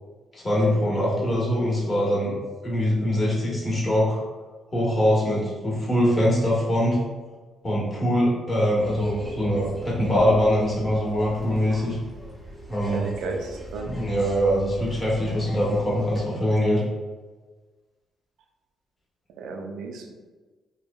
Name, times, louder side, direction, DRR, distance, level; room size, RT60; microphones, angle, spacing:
voice 1, 0.3-2.3 2.6-4.2 4.7-7.0 7.6-12.0 12.7-13.0 13.8-16.8, equal, 30° left, -6 dB, 1.0 m, -23 dB
sound 1, 8.8-16.2, right 1 dB, 5° right, 0.6 m, -38 dB
voice 2, 12.9-13.9 19.4-20.1, right 3 dB, 85° right, 3 dB, 0.3 m, -34 dB
2.9 x 2.0 x 2.3 m, 1.3 s
cardioid pair, 90°, 0 cm